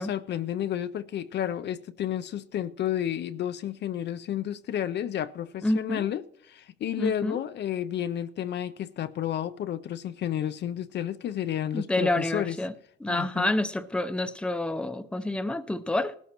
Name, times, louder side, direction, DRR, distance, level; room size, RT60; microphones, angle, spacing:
voice 1, 0.0-12.6 13.1-13.5, left 10 dB, 60° left, 0.5 m, -31 dB
voice 2, 5.6-6.1 7.0-7.4 11.7-12.7 13.0-16.1, left 1 dB, 5° left, 0.6 m, -28 dB
18.5 x 12.5 x 2.9 m
cardioid pair, 90°, 20 cm